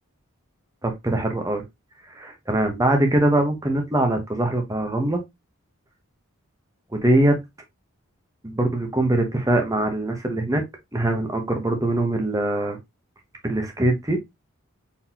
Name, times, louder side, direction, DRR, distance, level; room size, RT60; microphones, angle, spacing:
voice 1, 0.8-1.6 2.1-5.2 6.9-7.4 8.4-10.6 10.9-12.8 13.4-14.2, right 1 dB, 15° right, 1.0 m, -22 dB
4.2 x 3.9 x 2.8 m
head